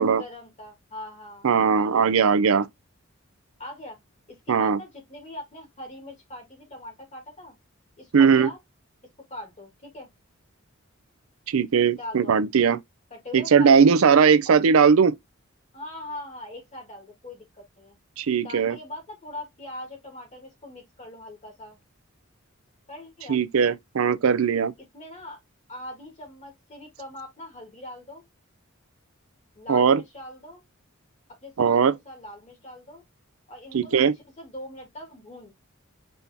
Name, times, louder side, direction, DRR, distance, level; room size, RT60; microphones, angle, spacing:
voice 1, 0.0-2.3 3.6-4.0 4.3-7.6 8.0-8.6 9.3-10.1 11.9-12.4 13.1-13.9 14.5-14.6 15.7-21.8 22.9-23.4 24.9-25.4 25.7-28.2 29.5-30.6 31.4-33.0 33.5-34.1 34.4-35.5, left 1 dB, 35° left, 2.2 m, -41 dB
voice 2, 1.4-2.7 4.5-4.8 8.1-8.5 11.5-12.8 13.3-15.1 18.2-18.8 23.3-24.7 29.7-30.0 31.6-31.9 33.7-34.1, right 6 dB, 80° right, 0.5 m, -19 dB
5.4 x 3.4 x 2.8 m
head